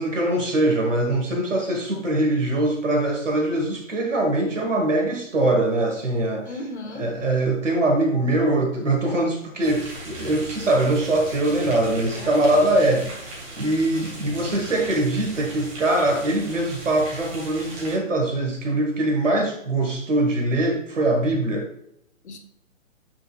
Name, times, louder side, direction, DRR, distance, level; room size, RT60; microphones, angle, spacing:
voice 1, 0.0-6.5 7.0-13.1 13.6-21.7, right 1 dB, 65° right, 2 dB, 1.8 m, -22 dB
voice 2, 6.4-7.1 12.2-13.1 22.2-22.4, left 2 dB, 55° left, 5 dB, 1.6 m, -36 dB
sound 1, 9.6-18.0, right 1 dB, 20° right, 2.6 m, -38 dB
8.7 x 6.4 x 2.5 m, 0.74 s
figure-of-eight pair, 130°, 40 cm